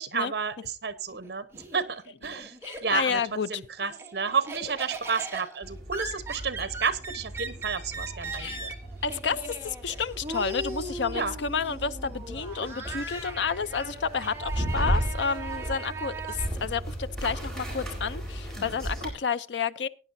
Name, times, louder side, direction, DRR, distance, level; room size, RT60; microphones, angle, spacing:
voice 1, 0.0-2.5 2.8-3.2 3.5-8.7 11.1-11.3 12.6-12.7, right 5 dB, 65° right, 1.0 m, -31 dB
Laughter, 1.1-3.2 3.6-16.5, right 3 dB, 15° right, 1.8 m, -39 dB
voice 2, 2.4-3.6 8.3-8.6 9.0-19.9, left 6 dB, 85° left, 0.6 m, -30 dB
sound 1, 5.6-19.1, right 1 dB, 5° left, 4.3 m, -35 dB
18.5 x 9.5 x 2.7 m
head